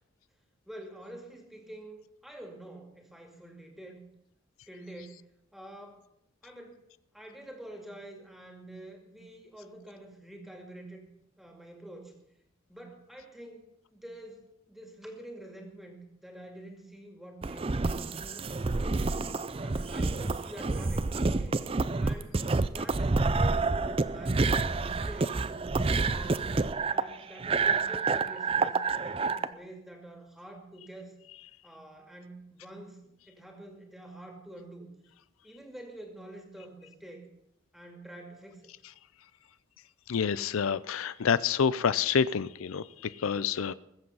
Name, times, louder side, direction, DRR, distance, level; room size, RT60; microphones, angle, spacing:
voice 1, 0.7-4.0 4.7-5.2 5.5-6.1 6.4-6.8 7.1-11.1 11.4-12.2 12.7-13.7 13.9-19.1 19.6-21.6 22.0-25.5 26.1-26.6 26.9-31.2 31.6-34.9 35.4-37.3 37.7-38.7, right 1 dB, ahead, 2 dB, 2.2 m, -47 dB
sound 1, 17.4-29.5, right 3 dB, 25° right, 0.4 m, -28 dB
voice 2, 40.1-43.7, left 6 dB, 85° left, 17 dB, 0.5 m, -28 dB
21.0 x 7.9 x 5.5 m, 0.81 s
head